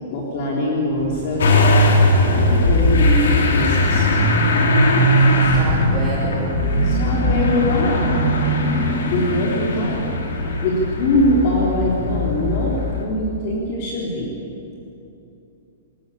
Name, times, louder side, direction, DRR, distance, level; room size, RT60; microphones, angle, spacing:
voice 1, 0.1-1.6 2.2-4.2 6.9-8.1 9.1-10.1 10.6-12.7 13.0-14.3, left 1 dB, 35° left, -3 dB, 3.9 m, -22 dB
sound 1, 1.0-12.4, right 2 dB, 80° right, 5.4 m, -27 dB
Motor vehicle (road) / Engine starting, 1.4-13.0, left 1 dB, 75° left, 4.3 m, -19 dB
voice 2, 5.4-6.6, right 2 dB, 15° right, -5 dB, 3.0 m, -29 dB
29.0 x 19.5 x 8.7 m, 2.9 s
hypercardioid pair, 180°, 0 cm